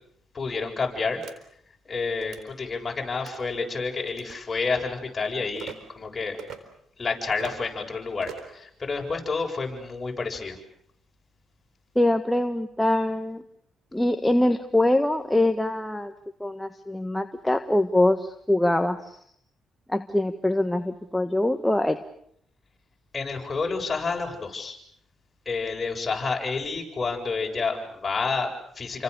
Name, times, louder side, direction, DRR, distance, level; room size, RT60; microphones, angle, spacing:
voice 1, 0.3-1.2 1.9-6.4 7.0-10.6 23.1-24.8 25.5-29.0, left 4 dB, 30° left, 1 dB, 7.7 m, -29 dB
sound 1, 1.2-1.4 2.1-2.4 3.1-3.4 4.1-4.4 5.5-5.8 6.4-6.6 7.3-7.6 8.2-8.6, right 8 dB, 75° right, 4.0 m, -41 dB
voice 2, 11.9-13.4 13.9-16.1 16.4-19.2 19.9-22.0, left 1 dB, 5° left, 6 dB, 1.5 m, -23 dB
29.5 x 25.5 x 6.9 m, 0.69 s
cardioid pair, 90°, 0 cm